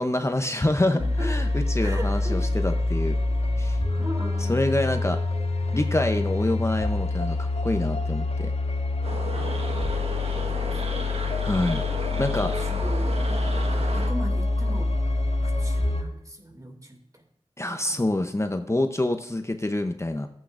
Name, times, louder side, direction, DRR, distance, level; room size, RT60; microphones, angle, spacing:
voice 1, 0.0-3.2 3.6-3.8 4.5-5.2 5.7-8.5 11.4-11.8 12.2-12.5 17.6-20.3, left 1 dB, 25° left, 6 dB, 0.7 m, -26 dB
voice 2, 0.9-1.3 1.8-2.4 3.9-4.6 10.7-10.8 12.3-13.3 13.5-14.9 15.4-17.2 17.7-18.0, equal, 30° right, 4 dB, 2.3 m, -38 dB
sound 1, 1.0-16.0, left 2 dB, 75° left, 3.7 m, -26 dB
sound 2, 9.0-14.1, right 2 dB, 65° right, 1.3 m, -34 dB
15.0 x 8.4 x 2.5 m, 0.78 s
wide cardioid pair, 60°, 11 cm